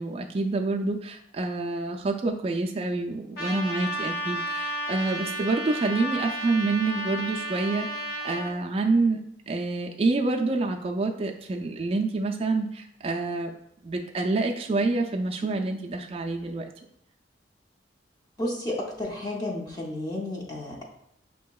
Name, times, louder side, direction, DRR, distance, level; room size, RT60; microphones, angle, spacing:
voice 1, 0.0-13.5 13.8-16.7, right 3 dB, 35° right, 2 dB, 0.3 m, -27 dB
Trumpet, 3.4-8.5, right 1 dB, 60° left, 0.8 m, -32 dB
voice 2, 18.4-20.8, left 1 dB, 20° left, -2 dB, 0.6 m, -32 dB
5.9 x 2.7 x 2.3 m, 0.72 s
head